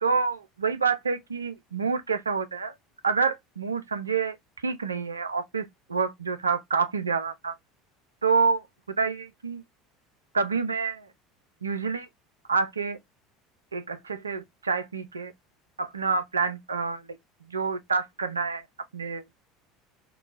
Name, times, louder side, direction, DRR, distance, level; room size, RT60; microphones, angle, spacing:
voice 1, 0.0-2.7 3.0-4.4 4.6-7.5 8.2-8.6 9.0-9.6 10.3-11.1 11.6-12.1 12.5-13.0 13.7-15.3 15.8-17.0 17.5-18.6 18.9-19.2, right 5 dB, 85° right, 0.4 m, -27 dB
2.9 x 2.2 x 2.4 m
figure-of-eight pair, 70°, 0 cm